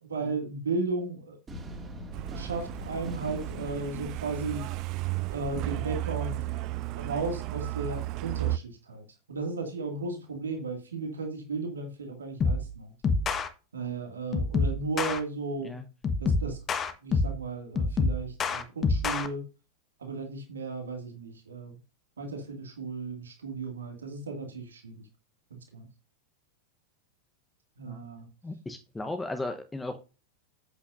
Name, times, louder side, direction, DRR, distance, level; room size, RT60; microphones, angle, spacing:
voice 1, 0.0-1.4 2.4-4.7 5.3-6.4 6.9-9.0 9.3-12.9 13.7-15.8 16.2-16.6 17.0-19.5 20.0-21.8 22.2-25.0 25.5-25.9 27.8-28.3, right 3 dB, 70° right, 3 dB, 2.2 m, -35 dB
sound 1, 1.5-5.4, equal, 20° right, 2.5 m, -42 dB
Truck, 2.1-8.6, right 16 dB, 40° right, 0.3 m, -34 dB
sound 2, 12.4-12.7 13.0-13.5 14.3-15.2 16.0-17.4 17.8-19.3, left 4 dB, 25° left, 1.2 m, -27 dB
voice 2, 28.4-30.0, left 2 dB, 10° left, 7 dB, 1.0 m, -36 dB
11.0 x 8.5 x 2.6 m, 0.31 s
figure-of-eight pair, 90°, 0 cm